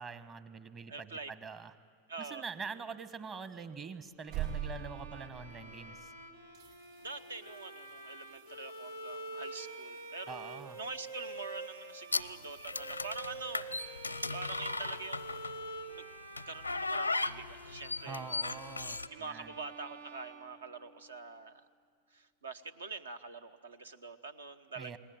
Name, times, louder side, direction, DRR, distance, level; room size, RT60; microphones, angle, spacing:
voice 1, 0.0-1.7 2.2-6.1 10.3-10.8 18.0-19.5 24.8-25.0, right 5 dB, 25° right, 13 dB, 1.2 m, -45 dB
voice 2, 0.9-1.3 2.1-2.4 7.0-14.0 14.3-16.0 16.5-18.3 19.1-21.7 22.1-25.0, right 4 dB, 70° right, 11 dB, 1.0 m, -45 dB
sound 1, 4.0-6.2 6.5-16.1 18.9-19.0, right 9 dB, 50° right, 5.9 m, -48 dB
Bowed string instrument, 4.2-21.2, right 1 dB, 85° right, 2.2 m, -48 dB
sound 2, 12.1-15.7 16.4-19.1, left 3 dB, 85° left, 0.6 m, -36 dB
29.0 x 20.0 x 9.0 m, 2.1 s
figure-of-eight pair, 90°, 0 cm